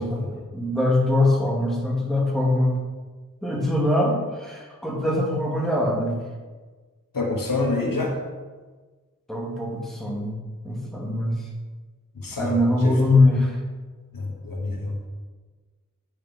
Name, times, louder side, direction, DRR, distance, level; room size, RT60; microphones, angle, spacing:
voice 1, 0.0-2.8 3.4-6.2 9.3-10.4 10.6-11.5 12.4-13.6, left 1 dB, ahead, -3 dB, 2.3 m, -22 dB
voice 2, 7.1-8.2 12.1-13.1 14.1-15.1, left 2 dB, 80° left, 1 dB, 1.3 m, -28 dB
8.8 x 6.6 x 4.3 m, 1.4 s
wide cardioid pair, 50°, 33 cm